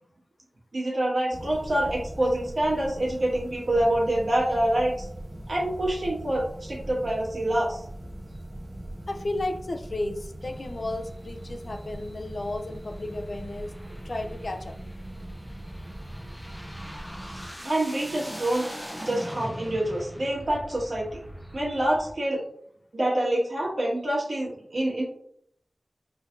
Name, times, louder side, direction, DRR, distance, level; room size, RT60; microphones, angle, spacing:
voice 1, 0.7-5.1 5.5-7.8 17.6-18.7 19.0-21.1 21.5-22.4 22.9-25.0, right 1 dB, 65° right, -5 dB, 1.6 m, -26 dB
sound 1, 1.3-17.5, right 1 dB, 30° right, 1.4 m, -40 dB
voice 2, 9.1-13.7 14.0-14.8, left 2 dB, 60° left, 5 dB, 0.5 m, -33 dB
sound 2, 10.4-22.1, equal, ahead, 0.7 m, -43 dB
4.9 x 3.3 x 2.6 m, 0.69 s
wide cardioid pair, 75°, 0 cm